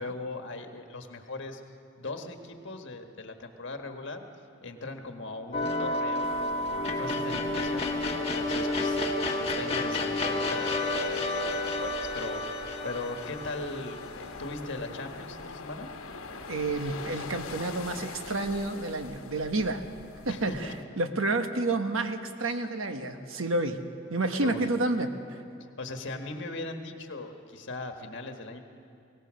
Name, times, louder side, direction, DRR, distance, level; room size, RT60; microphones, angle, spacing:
voice 1, 0.0-1.6 2.0-4.2 4.6-7.9 8.4-15.9 20.3-20.7 24.4-24.6 25.8-28.6, left 2 dB, 60° left, 5 dB, 1.6 m, -39 dB
sound 1, 5.5-14.8, left 2 dB, 30° left, 1.6 m, -30 dB
sound 2, 6.2-20.8, left 4 dB, 90° left, 1.1 m, -44 dB
voice 2, 16.5-19.8 20.2-20.7 21.0-23.8 24.1-25.4, right 2 dB, 75° right, 7 dB, 1.2 m, -30 dB
22.0 x 18.5 x 6.4 m, 2.4 s
head